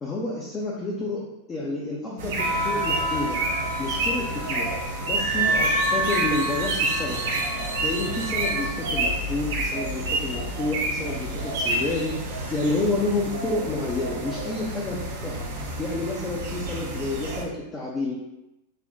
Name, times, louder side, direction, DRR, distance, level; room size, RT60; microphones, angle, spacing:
voice 1, 0.0-3.4 3.8-4.7 5.0-7.3 7.8-15.5 15.8-18.2, left 2 dB, 20° left, -5 dB, 0.5 m, -29 dB
sound 1, 2.2-17.4, right 2 dB, 55° right, 0.6 m, -29 dB
sound 2, 2.4-8.7, right 1 dB, 75° right, 1.3 m, -29 dB
4.1 x 2.1 x 2.7 m, 0.93 s
figure-of-eight pair, 90°, 0 cm